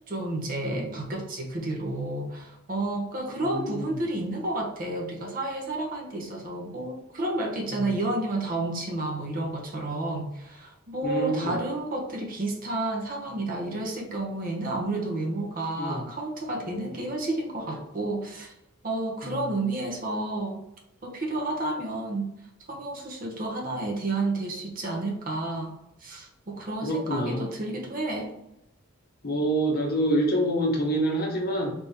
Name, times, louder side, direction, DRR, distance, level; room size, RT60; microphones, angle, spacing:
voice 1, 0.1-18.5 18.8-20.6 21.0-22.3 22.7-25.7 26.0-28.3, right 2 dB, 40° right, 1 dB, 0.6 m, -31 dB
voice 2, 3.4-4.0 7.7-7.9 11.0-11.6 15.8-16.0 19.2-19.4 26.8-27.4 29.2-31.7, right 1 dB, 45° left, 0 dB, 0.8 m, -27 dB
3.5 x 3.2 x 2.8 m, 0.85 s
head